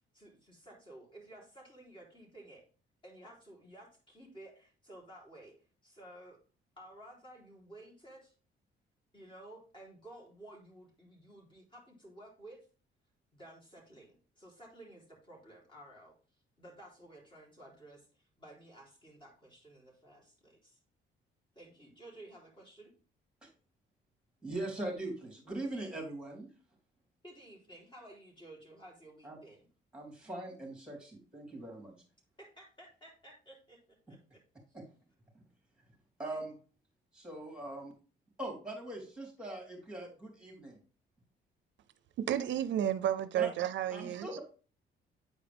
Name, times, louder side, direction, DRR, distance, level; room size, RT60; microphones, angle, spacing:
voice 1, 0.1-2.7 3.0-6.4 6.8-8.3 9.1-12.7 13.3-16.2 16.6-20.8 21.5-22.9 27.2-29.7 32.4-34.4 34.7-34.8, right 1 dB, 25° left, 3.5 m, -54 dB
voice 2, 24.4-26.5 29.2-29.4 29.9-32.0 34.7-34.8 36.2-36.5 37.1-37.9 38.4-40.8 43.4-43.5 43.9-44.4, right 2 dB, 5° right, 3.3 m, -41 dB
voice 3, 42.2-44.3, right 10 dB, 70° right, 0.5 m, -32 dB
9.1 x 4.8 x 3.5 m
cardioid pair, 90°, 20 cm